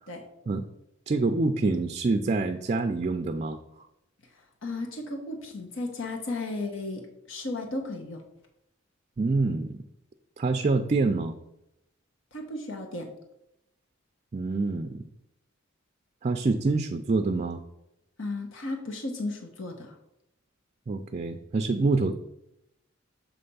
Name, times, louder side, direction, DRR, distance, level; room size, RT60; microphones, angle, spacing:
voice 1, 1.1-3.6 9.2-9.8 10.4-11.3 14.3-15.0 16.2-17.6 20.9-22.1, right 3 dB, 35° right, 7 dB, 0.4 m, -26 dB
voice 2, 4.6-8.2 12.3-13.1 18.2-19.9, left 2 dB, 75° left, 3 dB, 1.0 m, -34 dB
7.2 x 3.3 x 5.4 m, 0.85 s
head